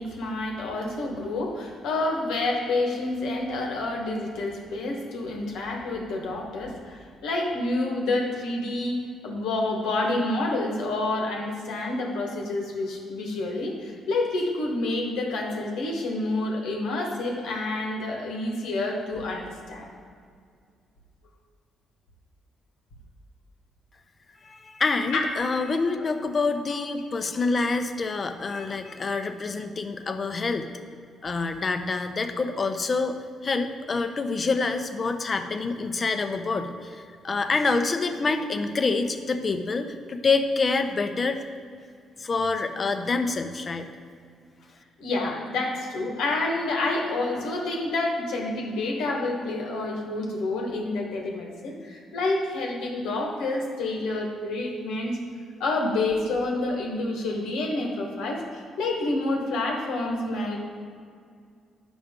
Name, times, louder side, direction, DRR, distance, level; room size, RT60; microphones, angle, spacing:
voice 1, 0.0-19.9 25.1-25.2 25.9-26.1 26.7-26.8 45.0-55.2 55.6-60.6, left 2 dB, 90° left, 0 dB, 1.4 m, -28 dB
voice 2, 24.4-30.7 31.2-33.2 33.4-41.4 42.2-43.9, left 3 dB, 35° left, 7 dB, 0.6 m, -27 dB
9.4 x 6.0 x 3.7 m, 2.2 s
cardioid pair, 90°, 0 cm